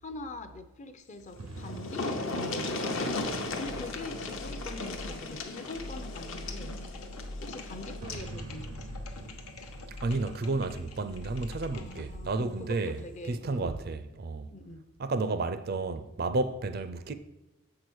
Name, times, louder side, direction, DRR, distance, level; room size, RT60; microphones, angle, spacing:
voice 1, 0.0-2.9 3.4-6.8 7.4-9.0 11.7-13.8 14.5-14.9, left 2 dB, 35° left, 0.5 m, -43 dB
sound 1, 1.2-1.3 1.5-8.3 9.6-9.7 10.1-10.2, left 2 dB, 60° left, 0.8 m, -36 dB
sound 2, 1.4-5.0 8.0-11.8, right 2 dB, 85° right, 0.6 m, -47 dB
sound 3, 3.0-12.3, left 2 dB, 90° left, 1.0 m, -43 dB
voice 2, 9.9-13.0 13.3-14.5 15.0-17.1, right 3 dB, 45° right, 0.4 m, -32 dB
7.4 x 4.7 x 6.2 m
head